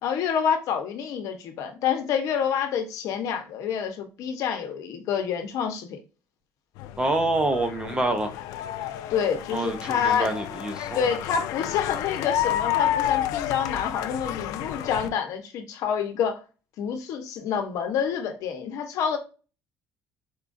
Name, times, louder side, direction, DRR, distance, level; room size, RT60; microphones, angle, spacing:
voice 1, 0.0-6.0 9.1-10.3 10.9-16.4 16.8-19.2, left 7 dB, 65° left, 0.8 m, -27 dB
sound 1, 6.8-15.1, left 12 dB, 85° left, 0.3 m, -30 dB
voice 2, 7.0-8.3 9.5-11.0, right 2 dB, 15° right, 0.6 m, -26 dB
4.4 x 2.4 x 2.5 m
cardioid pair, 145°, 6 cm